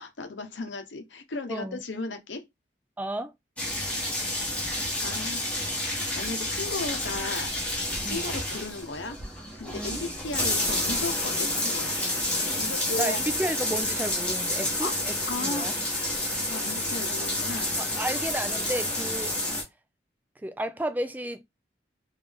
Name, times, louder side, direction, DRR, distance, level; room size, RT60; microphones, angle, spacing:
voice 1, 0.0-2.4 5.0-5.4 6.1-7.5 8.0-9.2 9.5-12.0 12.3-13.2 14.8-14.9 15.3-15.7 16.5-17.8, left 3 dB, 85° left, 0.9 m, -35 dB
voice 2, 1.5-1.8 3.0-3.3 8.0-8.3 9.7-10.0 13.0-15.7 18.0-19.3 20.4-21.4, right 1 dB, 10° right, 0.3 m, -32 dB
sound 1, 3.6-19.6, left 1 dB, 5° left, 1.0 m, -29 dB
3.5 x 2.6 x 3.4 m
head